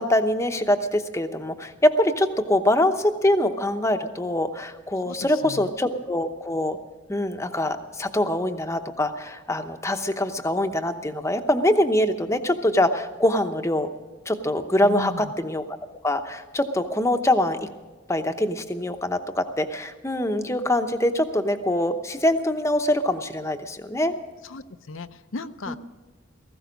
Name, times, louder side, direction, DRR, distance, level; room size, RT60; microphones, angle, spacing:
voice 1, 0.0-6.8 7.1-13.9 14.3-15.6 16.0-17.7 18.1-24.2 25.7-25.8, left 1 dB, 15° left, 7 dB, 0.8 m, -24 dB
voice 2, 5.0-5.7 14.8-15.3 24.4-25.8, left 3 dB, 70° left, 11 dB, 0.7 m, -36 dB
17.5 x 15.5 x 5.2 m, 1.3 s
head